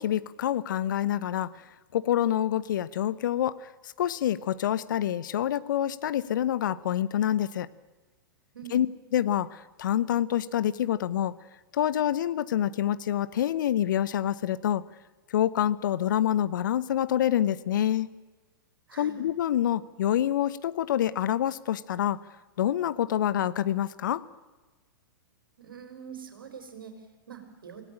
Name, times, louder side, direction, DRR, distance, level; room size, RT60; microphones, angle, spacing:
voice 1, 0.0-1.5 1.9-7.7 8.7-8.9 9.1-11.3 11.7-14.8 15.3-18.1 19.0-22.2 22.6-24.2, left 11 dB, 60° left, 17 dB, 1.1 m, -27 dB
voice 2, 25.6-27.8, right 8 dB, 70° right, 6 dB, 4.4 m, -44 dB
27.0 x 17.5 x 8.9 m, 1.2 s
figure-of-eight pair, 105°, 12 cm